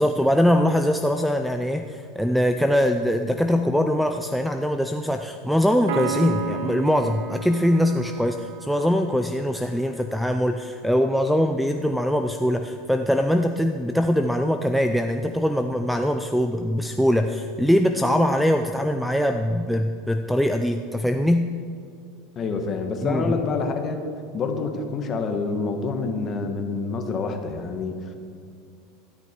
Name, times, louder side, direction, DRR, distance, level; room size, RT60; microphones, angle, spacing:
voice 1, 0.0-21.5 23.0-23.4, equal, ahead, 5 dB, 0.4 m, -22 dB
Piano, 5.9-9.5, right 6 dB, 80° right, 1.2 m, -33 dB
voice 2, 22.3-24.0 24.3-28.1, left 4 dB, 30° left, 5 dB, 1.4 m, -27 dB
13.5 x 12.5 x 4.5 m, 2.4 s
supercardioid pair, 150°, 0 cm